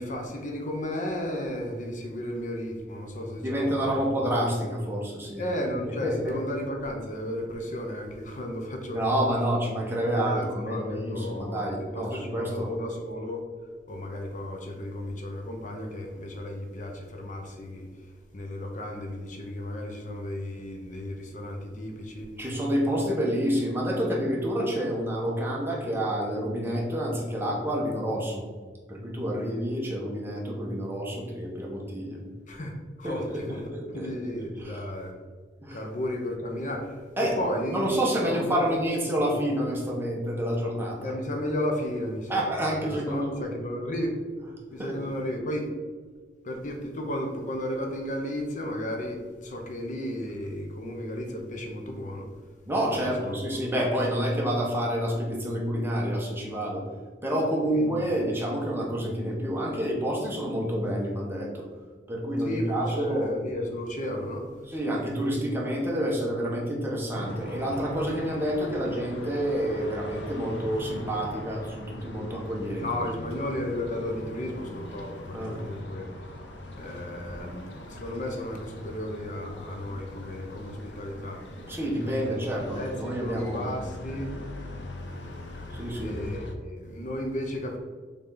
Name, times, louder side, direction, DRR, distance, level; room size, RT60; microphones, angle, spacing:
voice 1, 0.0-4.0 5.4-9.0 10.0-13.4 13.9-22.3 32.5-32.7 33.0-33.6 33.9-35.1 35.7-37.0 37.4-38.7 41.0-42.5 42.8-44.2 44.7-45.7 46.4-52.3 53.2-53.6 57.7-58.0 62.4-64.5 72.8-76.1 76.8-81.4 82.0-84.3 86.0-87.8, left 1 dB, 45° left, 2 dB, 0.9 m, -34 dB
voice 2, 3.4-5.4 5.8-6.4 8.9-12.7 22.4-28.4 28.9-32.2 33.0-34.1 34.6-34.8 35.6-35.8 37.2-37.4 37.7-41.1 42.3-43.4 44.8-45.0 52.7-56.8 57.2-61.6 62.1-63.3 64.7-72.9 75.3-75.6 81.7-83.7 85.7-86.3, equal, 15° right, -3 dB, 1.3 m, -28 dB
sound 1, 67.1-86.5, left 1 dB, 85° left, 0.8 m, -41 dB
6.9 x 4.0 x 3.9 m, 1.5 s
head